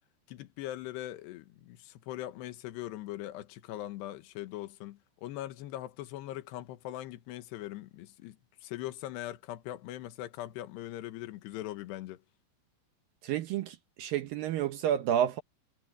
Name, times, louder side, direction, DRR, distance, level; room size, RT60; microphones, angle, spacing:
voice 1, 0.3-12.2, left 14 dB, 75° left, 3.3 m, -41 dB
voice 2, 13.2-15.4, right 10 dB, 75° right, 2.1 m, -30 dB
omnidirectional pair, 5.2 m